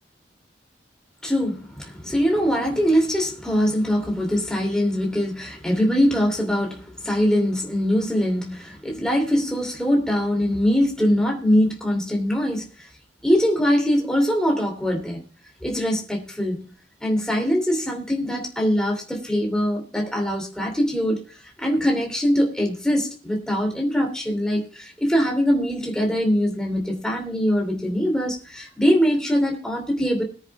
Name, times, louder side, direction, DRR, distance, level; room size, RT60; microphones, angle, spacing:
voice 1, 1.2-12.9 13.2-15.2 15.6-16.6 17.0-21.2 21.6-30.2, equal, 5° left, 1 dB, 2.7 m, -22 dB
21.0 x 9.7 x 2.3 m, 0.38 s
head